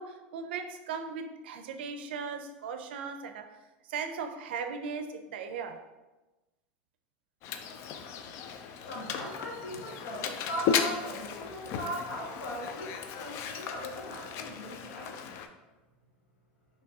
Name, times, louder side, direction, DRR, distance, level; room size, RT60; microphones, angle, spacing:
voice 1, 0.0-3.5 3.9-5.8, right 5 dB, 85° right, 7 dB, 0.4 m, -38 dB
Mechanisms, 7.4-15.5, left 7 dB, 55° left, 0.4 m, -36 dB
voice 2, 8.5-15.3, equal, 90° left, -3 dB, 1.3 m, -39 dB
4.5 x 3.0 x 2.7 m, 1.1 s
supercardioid pair, 105°, 6 cm